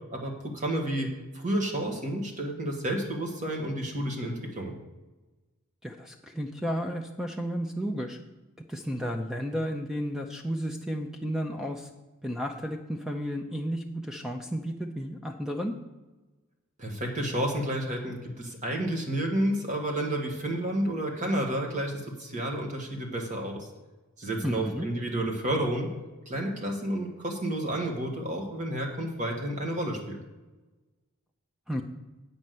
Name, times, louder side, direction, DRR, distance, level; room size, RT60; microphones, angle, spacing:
voice 1, 0.1-4.8 16.8-23.7 24.2-25.9 26.3-30.2, right 1 dB, 35° right, 1 dB, 1.7 m, -30 dB
voice 2, 5.8-8.2 8.7-11.9 12.2-15.7 24.4-24.9 31.7-31.8, equal, ahead, 3 dB, 0.6 m, -32 dB
8.6 x 5.4 x 7.7 m, 1.1 s
head